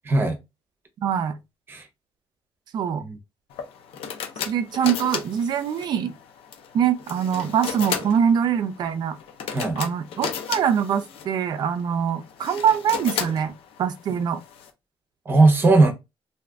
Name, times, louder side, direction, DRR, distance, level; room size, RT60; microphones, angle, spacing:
voice 1, 0.1-0.4 1.7-1.8 3.0-3.2 9.5-9.8 15.3-15.9, right 3 dB, 25° right, 0.8 m, -18 dB
voice 2, 1.0-1.4 2.7-3.0 4.4-6.1 6.7-9.2 9.8-13.5 13.8-14.4, right 8 dB, 50° right, 0.4 m, -23 dB
sound 1, 3.5-14.7, left 7 dB, 85° left, 0.7 m, -35 dB
2.6 x 2.5 x 3.4 m
cardioid pair, 170°, 9 cm